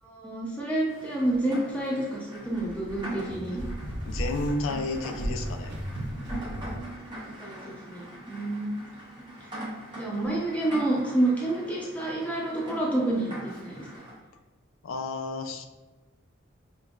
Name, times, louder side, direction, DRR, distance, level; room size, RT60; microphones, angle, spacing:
voice 1, 0.0-3.6 7.1-8.7 9.9-13.9, right 1 dB, 5° left, -5 dB, 0.7 m, -29 dB
Rain, 0.9-14.2, right 1 dB, 25° right, 0.8 m, -42 dB
sound 1, 2.5-6.9, equal, 60° right, 0.6 m, -35 dB
voice 2, 4.1-5.7 14.8-15.6, left 2 dB, 85° left, 7 dB, 0.4 m, -31 dB
5.2 x 2.1 x 2.3 m, 1.2 s
head